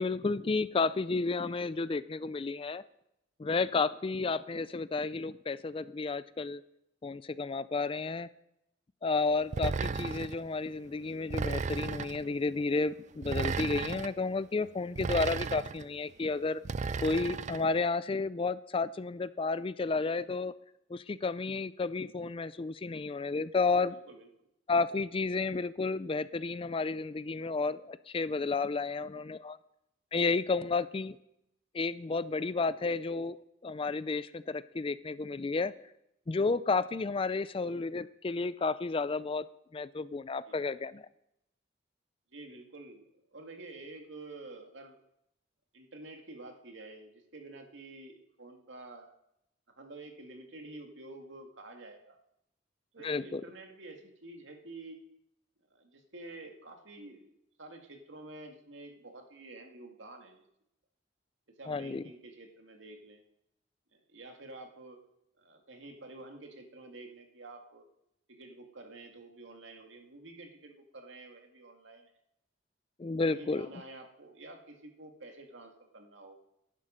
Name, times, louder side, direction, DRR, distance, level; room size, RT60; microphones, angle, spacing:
voice 1, 0.0-2.8 3.4-6.6 7.0-8.3 9.0-16.6 17.0-20.5 20.9-24.0 24.7-29.6 30.1-31.2 31.7-33.4 33.6-35.7 36.3-39.4 39.7-41.1 53.0-53.4 61.7-62.0 73.0-73.7, left 4 dB, 30° left, 16 dB, 0.4 m, -32 dB
sound 1, 9.5-10.4 11.3-12.2 13.2-14.1 15.0-15.8 16.6-17.6, right 4 dB, 40° right, 0.4 m, -34 dB
voice 2, 23.9-24.3 40.5-40.6 42.3-45.0 45.7-49.2 49.8-52.2 52.9-55.0 55.7-57.3 57.6-60.4 61.5-63.2 63.9-65.0 65.4-67.9 68.3-72.1 73.3-76.4, right 2 dB, 85° right, 3 dB, 2.1 m, -49 dB
13.0 x 11.5 x 5.1 m, 0.80 s
head